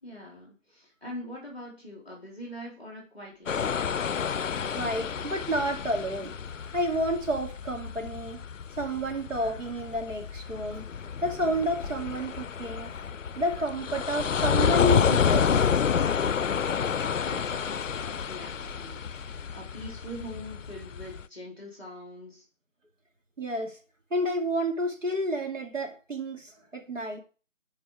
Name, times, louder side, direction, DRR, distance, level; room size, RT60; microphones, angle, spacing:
voice 1, 0.0-3.6 17.2-22.4, equal, 10° right, 2.8 m, -43 dB
Writing, 3.3-20.4 20.7-21.1, left 1 dB, 10° left, 2.3 m, -52 dB
sound 1, 3.5-21.2, left 7 dB, 70° left, 0.5 m, -29 dB
voice 2, 4.7-6.3 6.7-8.4 8.8-10.8 11.2-12.9 13.4-15.5 23.4-23.8 24.1-27.2, right 1 dB, 70° right, 2.6 m, -30 dB
10.0 x 5.3 x 4.8 m
figure-of-eight pair, 170°, 39 cm